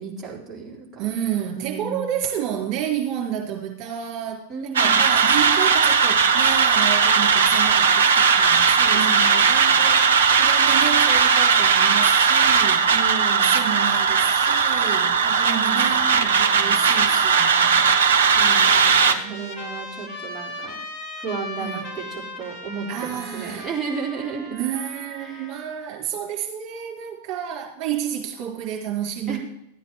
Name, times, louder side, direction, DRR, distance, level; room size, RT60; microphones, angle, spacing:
voice 1, 0.0-1.1 1.5-2.1 4.5-5.0 7.3-7.8 8.9-9.4 9.6-9.7 12.9-13.6 15.3-16.0 16.2-17.0 18.2-20.9 21.2-24.6 25.2-25.5 29.3-29.4, right 5 dB, 15° right, -4 dB, 3.9 m, -34 dB
voice 2, 1.0-12.9 13.4-17.9 19.2-19.8 21.6-21.8 22.9-23.7 24.5-29.4, right 10 dB, 45° right, 0 dB, 4.0 m, -31 dB
sound 1, 4.7-19.1, right 6 dB, 60° right, 1.1 m, -18 dB
Trumpet, 16.7-25.9, left 1 dB, 30° left, 2.5 m, -38 dB
14.0 x 9.2 x 4.8 m, 0.77 s
figure-of-eight pair, 90°, 0 cm